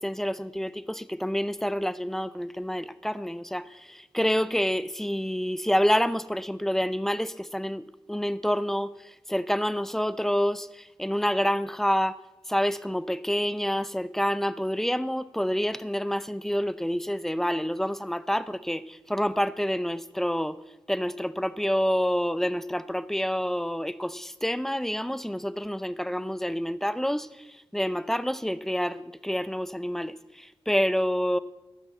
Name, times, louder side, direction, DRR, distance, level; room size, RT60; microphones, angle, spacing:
voice 1, 0.0-12.2 12.5-20.6 20.9-31.4, equal, 5° left, 0.6 m, -28 dB
13.5 x 6.0 x 7.9 m
cardioid pair, 45°, 10 cm